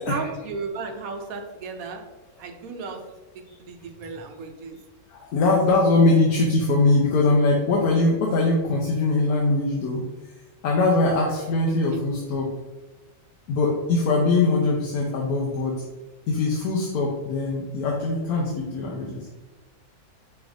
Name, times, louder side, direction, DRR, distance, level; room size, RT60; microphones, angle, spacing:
voice 1, 0.1-2.0 2.4-3.0 3.3-4.8 5.7-5.8, right 4 dB, 75° right, 4 dB, 1.0 m, -34 dB
voice 2, 5.1-10.4 10.6-12.5 13.5-15.8 16.3-19.3, left 2 dB, 80° left, -2 dB, 1.1 m, -22 dB
5.2 x 3.4 x 2.4 m, 1.2 s
omnidirectional pair, 1.6 m